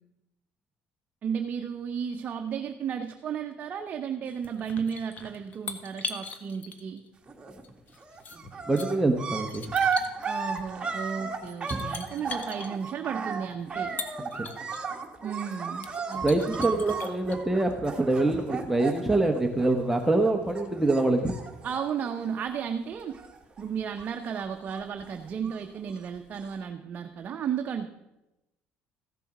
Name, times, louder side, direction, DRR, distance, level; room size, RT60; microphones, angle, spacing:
voice 1, 1.2-7.0 10.2-13.9 15.2-16.8 21.6-23.2 23.6-27.9, right 7 dB, 45° right, 5 dB, 0.8 m, -34 dB
sound 1, 4.2-7.1 7.6-8.9 9.4-10.3 11.1-11.2 11.4-12.7 13.7-14.8 15.3-15.4 15.7-17.4, left 5 dB, 40° left, 1.4 m, -40 dB
sound 2, 7.3-7.7 8.0-20.3 20.5-22.7 23.0-23.6 23.9-25.8 26.5-26.6, right 5 dB, 25° right, 1.8 m, -34 dB
voice 2, 8.7-9.7 14.2-14.3 16.2-21.3, right 2 dB, 5° right, 2 dB, 1.0 m, -25 dB
15.0 x 7.0 x 5.9 m, 0.96 s
cardioid pair, 110°, 4 cm